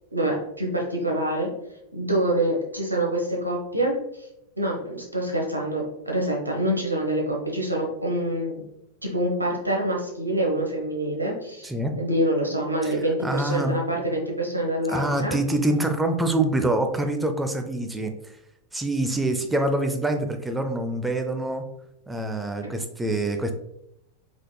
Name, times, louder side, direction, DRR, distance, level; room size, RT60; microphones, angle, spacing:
voice 1, 0.1-1.5 1.9-3.9 4.6-8.6 9.0-11.7 12.0-15.4 22.6-22.7, right 1 dB, 85° right, -1 dB, 1.0 m, -26 dB
voice 2, 11.6-11.9 12.8-13.8 14.9-18.4 18.7-21.7 22.1-23.5, right 1 dB, 10° right, 6 dB, 0.5 m, -25 dB
4.7 x 3.7 x 2.2 m, 0.83 s
figure-of-eight pair, 90°, 0 cm